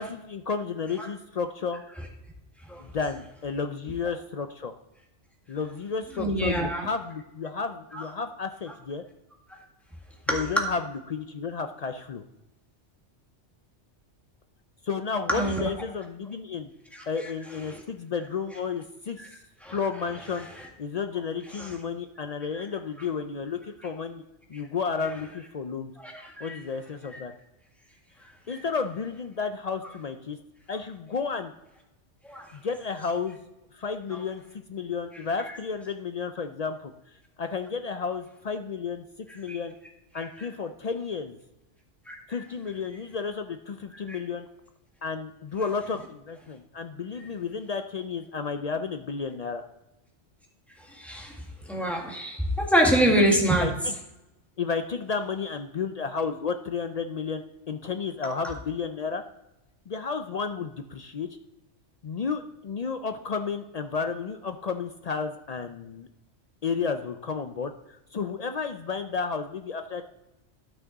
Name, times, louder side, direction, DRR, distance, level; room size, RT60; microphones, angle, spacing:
voice 1, 0.0-1.8 2.8-4.7 5.5-9.0 10.3-12.2 14.8-16.7 17.1-19.2 19.7-20.5 20.8-24.2 24.5-25.9 26.4-27.3 28.5-30.4 30.7-31.5 32.5-33.4 33.7-36.9 37.4-39.0 39.3-39.7 40.1-41.4 42.3-44.5 45.0-49.6 53.1-53.9 54.6-57.4 57.7-59.2 59.9-61.3 62.0-66.1 66.6-70.0, left 5 dB, 65° left, 8 dB, 0.4 m, -32 dB
voice 2, 6.2-6.9 7.9-8.0 10.3-10.4 15.3-15.7 16.9-17.0 17.7-17.8 19.6-19.8 21.6-21.7 26.0-26.6 32.2-32.4 39.5-39.6 40.2-40.3 42.1-42.2 44.1-44.2 51.0-51.3 51.7-53.7 58.2-58.3, right 1 dB, ahead, -1 dB, 1.6 m, -25 dB
12.5 x 5.9 x 4.0 m, 0.95 s
omnidirectional pair, 1.3 m